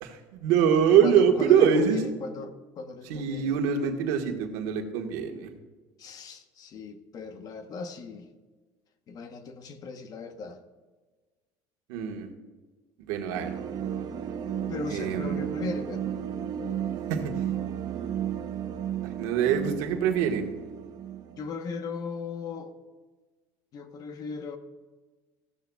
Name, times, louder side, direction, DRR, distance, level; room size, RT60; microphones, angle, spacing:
voice 1, 0.0-2.0 3.0-5.5 11.9-12.3 13.1-13.5 14.9-15.4 17.1-17.3 19.2-20.4, right 8 dB, 85° right, 4 dB, 1.5 m, -24 dB
voice 2, 1.0-3.5 6.0-8.3 9.1-10.6 14.7-16.1 21.3-22.7 23.7-24.6, left 4 dB, 45° left, 8 dB, 1.0 m, -37 dB
sound 1, 13.3-21.5, right 9 dB, 45° right, 0.8 m, -33 dB
15.0 x 11.0 x 2.3 m, 1.3 s
cardioid pair, 125°, 9 cm